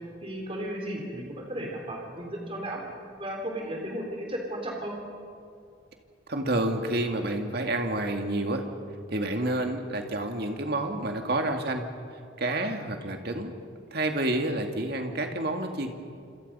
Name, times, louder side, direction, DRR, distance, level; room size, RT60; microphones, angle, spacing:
voice 1, 0.2-2.8 3.2-4.9, right 1 dB, 30° right, 1 dB, 3.5 m, -34 dB
voice 2, 6.3-8.6 9.1-11.9 12.4-13.5 13.9-15.9, right 1 dB, 55° right, 4 dB, 2.2 m, -29 dB
27.5 x 26.5 x 5.6 m, 2.3 s
head